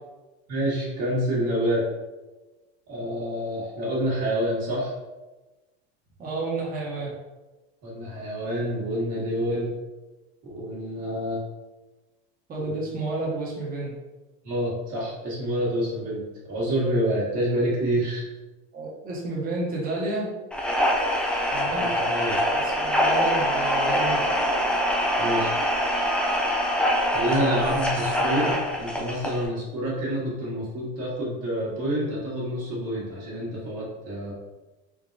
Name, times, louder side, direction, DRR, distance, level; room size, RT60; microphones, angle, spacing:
voice 1, 0.5-1.8 2.9-4.9 7.8-9.7 10.5-11.4 12.6-12.8 14.4-18.2 21.7-22.4 25.2-25.5 27.1-34.3, equal, 50° right, -6 dB, 1.5 m, -27 dB
voice 2, 6.2-7.1 12.5-13.9 18.7-20.3 21.5-21.8 22.5-24.2, right 2 dB, 25° right, -5 dB, 1.1 m, -30 dB
sound 1, 20.5-29.4, equal, 5° left, 0.5 m, -24 dB
3.8 x 2.7 x 2.5 m, 1.1 s
supercardioid pair, 105°, 33 cm